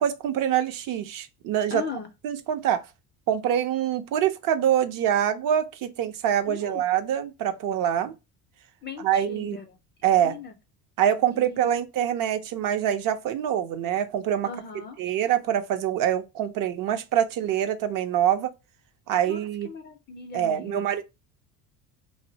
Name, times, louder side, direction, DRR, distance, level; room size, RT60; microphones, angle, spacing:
voice 1, 0.0-1.8 2.2-2.9 3.3-8.1 9.0-9.6 10.0-10.4 11.0-14.5 15.0-18.5 19.1-19.7 20.3-21.0, right 10 dB, 50° right, 0.5 m, -25 dB
voice 2, 1.7-2.1 6.5-6.8 8.8-9.8 10.2-10.6 11.3-11.7 14.4-15.0 19.2-20.9, left 5 dB, 25° left, 0.3 m, -39 dB
2.6 x 2.0 x 2.7 m
supercardioid pair, 85°, 44 cm